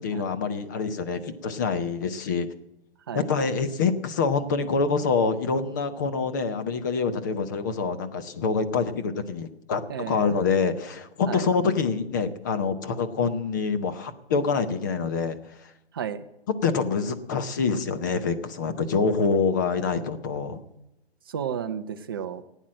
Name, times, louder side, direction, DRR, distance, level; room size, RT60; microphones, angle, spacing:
voice 1, 0.0-2.5 3.1-15.4 16.6-20.6, left 5 dB, 20° left, 9 dB, 0.6 m, -26 dB
voice 2, 9.9-10.4 11.3-11.5 15.9-16.2 21.3-22.4, right 8 dB, 20° right, 8 dB, 0.5 m, -32 dB
16.0 x 9.2 x 7.5 m, 0.90 s
hypercardioid pair, 155°, 32 cm